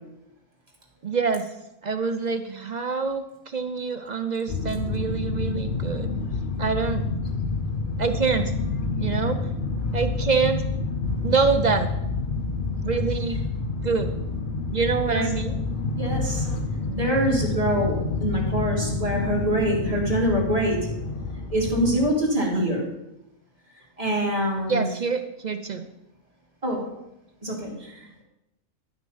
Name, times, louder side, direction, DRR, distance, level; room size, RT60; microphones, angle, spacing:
voice 1, 1.0-1.5 1.8-6.1 6.6-7.1 8.0-8.5 9.0-9.4 9.9-10.6 11.2-11.9 12.8-13.4 13.8-14.1 14.7-15.5 22.5-22.6 24.7-25.8, right 5 dB, 50° right, 8 dB, 0.5 m, -25 dB
sound 1, 4.5-22.1, left 3 dB, 50° left, 0.8 m, -28 dB
voice 2, 15.9-16.5 16.9-20.9 21.5-22.9 24.0-24.9 26.6-26.8 27.4-28.2, equal, 25° right, -2 dB, 2.5 m, -25 dB
11.5 x 6.1 x 5.5 m, 0.87 s
omnidirectional pair, 1.4 m